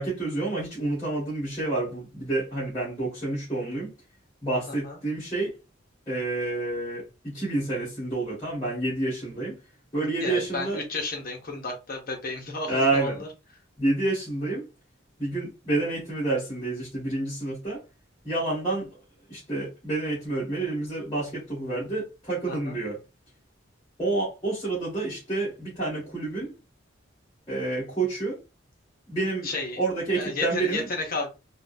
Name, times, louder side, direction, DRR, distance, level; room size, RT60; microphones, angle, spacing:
voice 1, 0.0-3.9 4.4-5.5 6.1-9.6 9.9-10.8 12.7-13.2 13.8-14.7 15.2-17.8 18.2-18.9 19.3-23.0 24.0-26.5 27.5-28.4 29.1-29.5 29.8-30.9, right 2 dB, 20° left, 1.8 m, -28 dB
voice 2, 4.7-5.0 10.2-13.3 22.5-22.8 29.4-29.8 30.1-31.3, left 3 dB, 45° left, 0.8 m, -32 dB
3.6 x 2.3 x 2.6 m
head